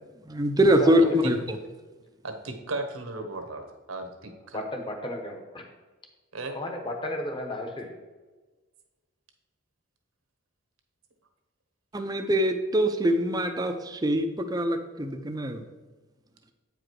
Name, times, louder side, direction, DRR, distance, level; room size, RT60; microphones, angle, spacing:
voice 1, 0.3-1.4 11.9-15.6, equal, 15° right, 6 dB, 0.5 m, -23 dB
voice 2, 0.8-1.3 4.5-5.6 6.5-7.9, left 1 dB, 20° left, 3 dB, 1.0 m, -33 dB
voice 3, 2.2-4.6 6.3-6.6, right 2 dB, 70° right, 5 dB, 1.2 m, -36 dB
8.8 x 4.9 x 4.6 m, 1.3 s
head